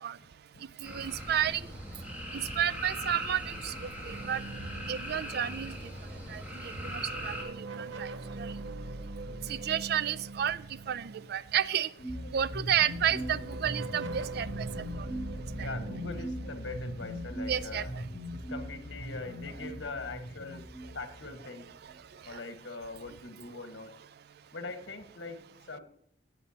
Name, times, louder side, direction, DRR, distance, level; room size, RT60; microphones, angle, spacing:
voice 1, 0.2-0.6 9.2-9.6 15.5-17.9 18.3-20.6 20.9-21.7 22.2-23.9 24.5-25.8, left 3 dB, 90° left, 8 dB, 1.5 m, -42 dB
sound 1, 0.8-7.4, equal, 10° right, 2.3 m, -40 dB
voice 2, 0.8-1.6 2.3-4.4 4.9-5.7 6.3-8.1 8.4-8.5 9.5-10.6 10.9-11.9 12.3-14.7 15.0-15.1 15.6-15.7 17.5-17.9, right 9 dB, 60° right, 18 dB, 0.4 m, -31 dB
sound 2, 4.1-6.3 6.7-11.8 12.8-18.2, right 3 dB, 85° right, 0.9 m, -43 dB
sound 3, 12.0-21.6, equal, 60° left, 2.8 m, -40 dB
17.0 x 8.0 x 2.8 m, 0.68 s
head